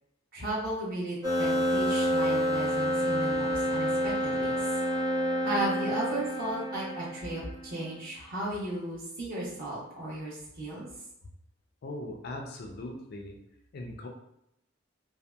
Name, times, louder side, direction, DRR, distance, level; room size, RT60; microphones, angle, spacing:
voice 1, 0.3-4.6 5.4-10.9, right 1 dB, 45° right, -6 dB, 0.9 m, -35 dB
sound 1, 1.2-7.6, equal, 20° right, 0.7 m, -28 dB
voice 2, 11.8-13.4 13.7-14.1, left 1 dB, 55° left, 2 dB, 0.4 m, -39 dB
2.7 x 2.1 x 2.2 m, 0.80 s
head